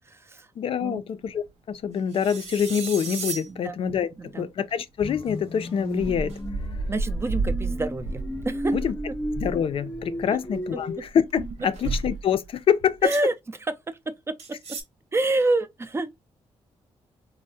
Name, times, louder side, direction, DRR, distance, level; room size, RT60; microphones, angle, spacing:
voice 1, 0.0-0.5 0.8-1.0 3.5-3.8 4.2-4.5 6.9-8.8 9.1-9.2 10.7-11.1 13.0-14.8 15.1-16.1, right 2 dB, 25° right, 0.4 m, -28 dB
voice 2, 0.6-6.4 8.7-8.9 9.4-13.0, left 8 dB, 55° left, 0.4 m, -26 dB
sound 1, 1.2-1.9 2.2-2.3 2.6-3.1 3.7-3.9 4.2-4.3 5.1-5.2 5.8-10.6 10.9-12.6 12.9-13.1, right 3 dB, 90° right, 0.5 m, -32 dB
sound 2, 2.1-3.5 4.7-4.8 5.3-5.4 6.1-6.4 11.6-12.2 13.0-13.3 14.4-14.8, right 4 dB, 75° right, 1.0 m, -33 dB
sound 3, 5.0-11.0, equal, 20° left, 0.6 m, -34 dB
3.3 x 2.0 x 2.6 m
cardioid pair, 85°, 11 cm